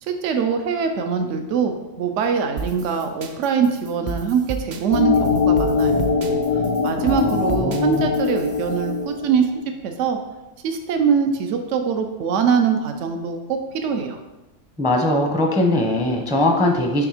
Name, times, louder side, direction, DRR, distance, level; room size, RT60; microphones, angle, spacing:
voice 1, 0.1-6.1 6.8-9.5 9.8-10.2 10.6-14.2, right 6 dB, 75° right, 6 dB, 0.9 m, -22 dB
sound 1, 2.6-8.9, right 4 dB, 50° right, 0.5 m, -33 dB
sound 2, 4.9-9.7, left 5 dB, 60° left, 0.4 m, -22 dB
voice 2, 7.0-8.0 14.8-17.1, left 1 dB, 5° right, 2 dB, 0.5 m, -21 dB
7.1 x 3.4 x 4.9 m, 1.1 s
omnidirectional pair, 1.3 m